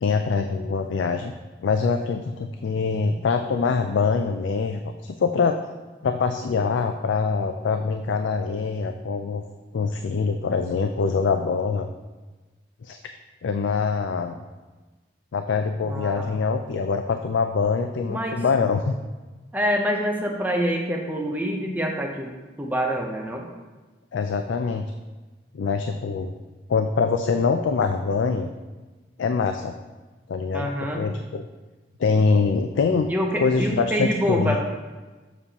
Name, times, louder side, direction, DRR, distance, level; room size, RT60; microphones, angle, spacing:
voice 1, 0.0-1.3 1.6-5.6 6.0-9.4 9.7-11.9 12.8-13.0 13.4-14.4 15.3-18.9 24.1-24.8 25.5-26.3 26.7-28.5 29.2-29.7 30.3-30.7 31.0-31.4 32.0-33.1 33.4-34.6, left 5 dB, 85° left, 6 dB, 0.4 m, -24 dB
voice 2, 15.8-16.3 18.1-18.4 19.5-22.3 22.6-23.5 30.5-31.1 33.1-34.6, equal, 10° right, 0 dB, 0.7 m, -26 dB
6.9 x 6.8 x 2.9 m, 1.3 s
head